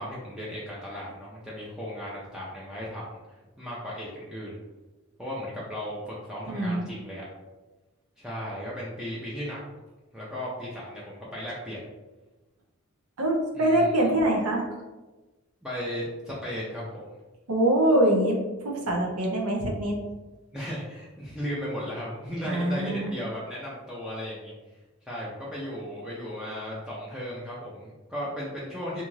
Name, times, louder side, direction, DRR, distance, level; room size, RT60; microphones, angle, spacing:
voice 1, 0.0-3.1 3.6-4.6 5.2-7.3 8.2-9.6 10.1-11.9 13.5-13.9 15.6-17.1 20.5-24.5 25.1-29.1, equal, 5° right, -7 dB, 0.3 m, -35 dB
voice 2, 6.5-6.8 13.2-14.7 17.5-18.4 18.6-20.0 22.4-23.1, right 1 dB, 90° right, 0 dB, 0.6 m, -24 dB
2.6 x 2.4 x 3.0 m, 1.2 s
head